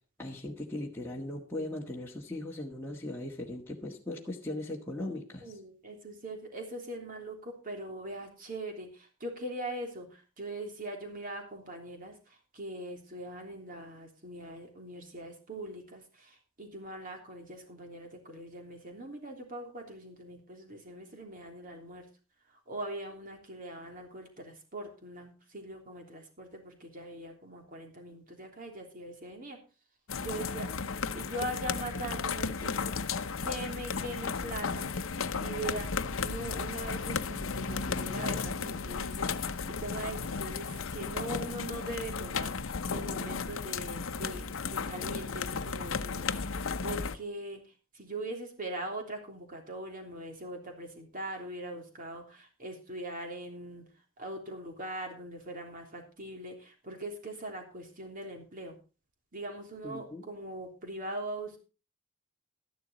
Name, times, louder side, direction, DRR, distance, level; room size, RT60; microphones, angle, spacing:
voice 1, 0.2-5.5 59.8-60.2, left 1 dB, 10° left, -4 dB, 1.7 m, -38 dB
voice 2, 5.4-22.0 22.7-29.6 30.2-32.7 33.4-34.9 35.4-35.9 36.2-53.8 54.2-58.8 59.3-61.6, right 1 dB, 40° right, 2 dB, 3.2 m, -41 dB
sound 1, 30.1-47.2, left 5 dB, 70° left, 0.8 m, -34 dB
13.5 x 11.0 x 4.1 m, 0.33 s
head